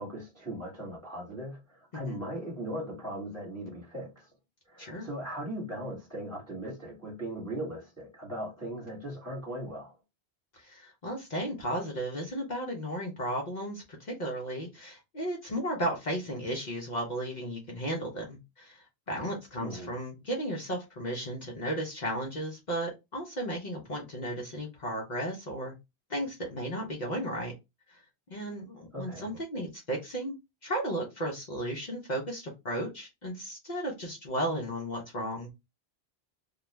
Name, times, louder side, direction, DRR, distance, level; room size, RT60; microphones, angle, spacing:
voice 1, 0.0-4.3 4.7-9.9 19.6-19.9 28.9-29.3, right 1 dB, 15° right, 1.3 m, -38 dB
voice 2, 4.8-5.1 10.5-25.7 26.1-27.5 27.9-28.0 28.3-35.5, right 1 dB, 50° left, 0.7 m, -34 dB
2.4 x 2.2 x 3.0 m
omnidirectional pair, 1.1 m